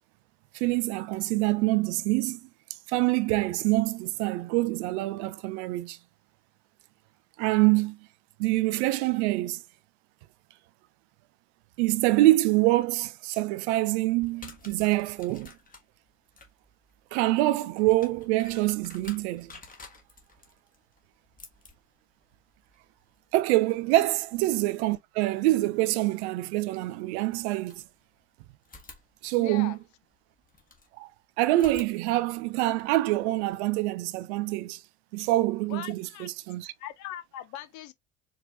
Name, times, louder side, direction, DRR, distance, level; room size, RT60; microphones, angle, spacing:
voice 1, 0.5-2.4 2.9-6.0 7.4-8.0 8.4-9.6 11.8-15.5 17.1-19.5 23.3-27.8 29.2-29.8 31.0-31.1 31.4-34.8 35.1-36.7, right 18 dB, 55° right, 0.5 m, -25 dB
sound 1, 14.2-25.0 26.5-26.6 27.3-28.3 28.6-30.9 31.5-33.6, left 3 dB, 20° left, 1.4 m, -52 dB
voice 2, 29.4-29.8 35.7-36.3 36.8-37.9, left 11 dB, 45° left, 0.7 m, -40 dB
4.6 x 2.8 x 2.3 m
figure-of-eight pair, 65°, 40 cm